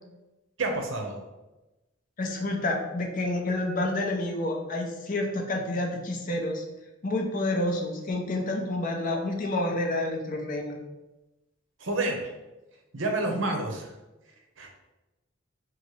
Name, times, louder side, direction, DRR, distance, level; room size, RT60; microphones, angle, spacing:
voice 1, 0.6-1.2 11.8-12.3 12.9-13.9 14.6-14.7, right 2 dB, 75° right, 2 dB, 0.8 m, -29 dB
voice 2, 2.2-6.6 7.0-10.8, left 2 dB, 45° left, 2 dB, 0.6 m, -29 dB
4.6 x 2.1 x 4.6 m, 1.0 s
head